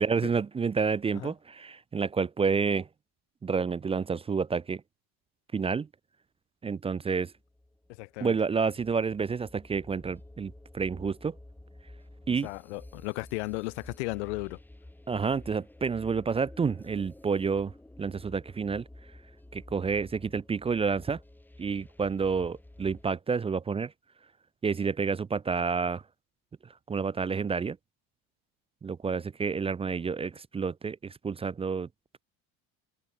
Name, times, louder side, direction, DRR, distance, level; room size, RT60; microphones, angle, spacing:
voice 1, 0.0-2.9 3.4-4.8 5.5-5.9 6.6-7.3 8.2-11.4 12.3-12.5 15.1-17.7 18.0-18.8 19.5-21.2 21.6-23.9 24.6-26.0 26.9-27.8 28.8-31.9, right 5 dB, 15° right, 0.6 m, -29 dB
sound 1, 7.3-23.1, left 1 dB, 5° left, 5.6 m, -51 dB
voice 2, 7.9-8.3 12.4-14.6, left 25 dB, 90° left, 2.6 m, -35 dB
supercardioid pair, 115°, 33 cm